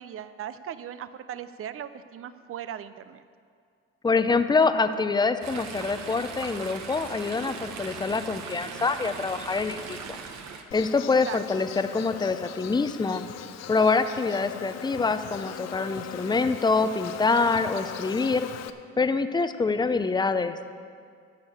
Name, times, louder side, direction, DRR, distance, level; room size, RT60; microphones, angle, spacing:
voice 1, 0.0-3.2 11.3-11.4, right 10 dB, 45° right, 13 dB, 0.6 m, -38 dB
voice 2, 4.0-10.2 10.7-13.2 13.7-18.5 19.0-20.8, left 4 dB, 15° left, 10 dB, 0.6 m, -25 dB
Chatter / Stream, 5.4-10.6, right 5 dB, 65° right, 1.2 m, -39 dB
Insect, 10.7-18.7, left 10 dB, 60° left, 0.7 m, -39 dB
9.8 x 6.5 x 8.6 m, 2.2 s
supercardioid pair, 75°, 30 cm